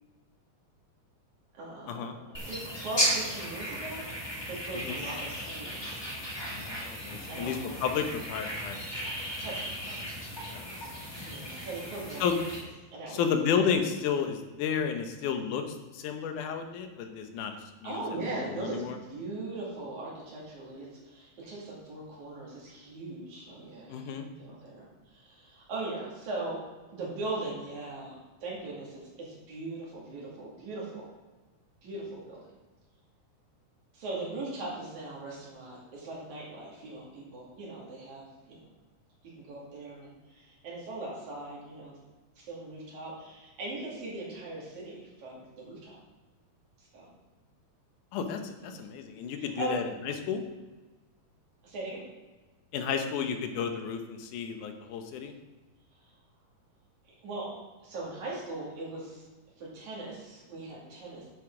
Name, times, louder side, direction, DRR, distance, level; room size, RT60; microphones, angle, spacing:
voice 1, 1.5-6.1 7.1-7.8 9.4-10.1 11.2-12.3 12.9-13.2 17.8-18.8 19.1-24.1 24.4-26.6 26.9-31.1 31.8-32.4 33.9-38.7 39.3-42.0 42.4-46.0 46.8-47.1 48.6-48.9 49.4-49.8 51.6-52.0 57.1-57.5 57.8-59.3 59.6-61.3, right 2 dB, 70° right, -5 dB, 3.9 m, -40 dB
sound 1, 2.3-12.6, equal, 20° left, 0.6 m, -35 dB
voice 2, 6.5-8.8 10.5-10.8 12.2-12.4 13.1-18.0 18.6-19.0 23.9-24.3 48.1-50.4 52.7-55.3, left 7 dB, 90° left, 6 dB, 2.4 m, -32 dB
10.0 x 7.0 x 3.8 m, 1.2 s
omnidirectional pair, 3.5 m